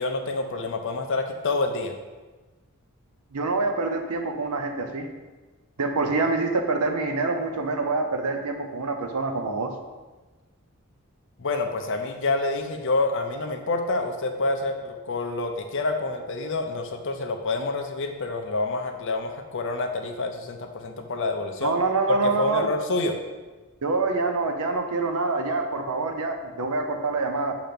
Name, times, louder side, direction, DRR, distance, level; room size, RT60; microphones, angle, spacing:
voice 1, 0.0-1.9 11.4-21.7 22.4-23.2, left 3 dB, 60° left, 5 dB, 0.6 m, -27 dB
voice 2, 3.3-5.1 5.8-9.7 21.6-22.7 23.8-27.5, right 3 dB, 90° right, 4 dB, 0.7 m, -26 dB
6.6 x 3.0 x 5.2 m, 1.2 s
head